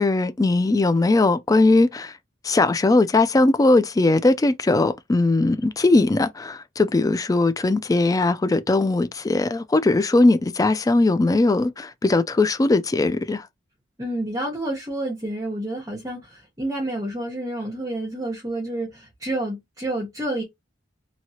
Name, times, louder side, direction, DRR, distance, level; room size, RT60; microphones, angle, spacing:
voice 1, 0.0-2.1 2.4-13.4, left 2 dB, 20° left, 0.3 m, -19 dB
voice 2, 14.0-20.4, right 1 dB, 20° right, 1.0 m, -29 dB
3.0 x 2.7 x 2.8 m
head